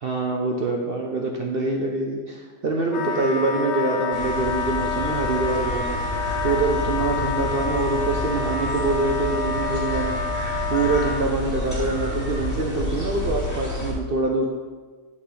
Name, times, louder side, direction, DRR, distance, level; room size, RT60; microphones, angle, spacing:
voice 1, 0.0-6.0 6.4-10.2 10.7-14.5, right 3 dB, 60° right, 0 dB, 0.6 m, -25 dB
Wind instrument woodwind instrument, 2.9-11.2, left 5 dB, 75° left, 1.2 m, -28 dB
sound 1, 4.1-13.9, left 1 dB, 10° right, 2.1 m, -29 dB
8.4 x 5.5 x 3.2 m, 1.4 s
omnidirectional pair, 1.7 m